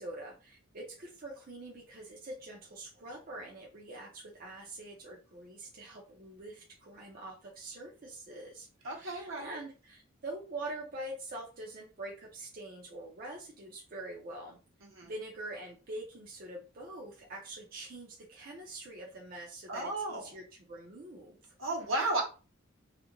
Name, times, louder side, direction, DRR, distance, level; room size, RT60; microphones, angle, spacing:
voice 1, 0.0-14.6 15.0-21.5, right 2 dB, 45° right, -2 dB, 0.6 m, -45 dB
voice 2, 8.8-9.5 14.8-15.1 19.7-20.2 21.6-22.2, right 2 dB, 75° right, 0 dB, 0.9 m, -33 dB
2.4 x 2.1 x 2.9 m, 0.34 s
head